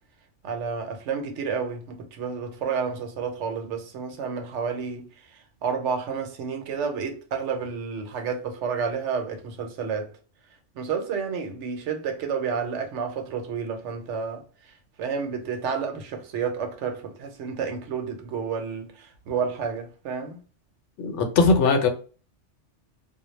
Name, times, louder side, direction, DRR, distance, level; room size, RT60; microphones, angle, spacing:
voice 1, 0.4-10.1 10.7-20.4, right 6 dB, 75° right, 0.9 m, -30 dB
voice 2, 21.0-21.9, left 4 dB, 75° left, 0.9 m, -20 dB
2.2 x 2.1 x 3.0 m
omnidirectional pair, 1.2 m